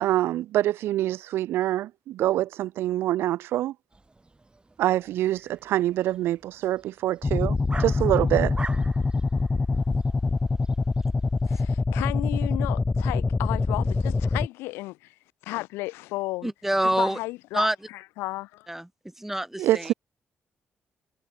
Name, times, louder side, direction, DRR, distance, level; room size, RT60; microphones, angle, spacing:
voice 1, 0.0-3.7 4.8-8.5 19.6-19.9, right 14 dB, 75° right, 0.3 m, -25 dB
sound 1, 3.9-11.7, right 2 dB, 25° right, 7.2 m, -45 dB
sound 2, 7.2-14.5, left 3 dB, 25° left, 0.5 m, -25 dB
voice 2, 11.5-15.1 15.4-16.5 16.8-17.7 18.2-18.7, left 20 dB, 85° left, 0.4 m, -33 dB
voice 3, 16.4-17.2 17.5-17.8 18.7-19.9, right 1 dB, 5° right, 1.3 m, -26 dB
supercardioid pair, 50°, 4 cm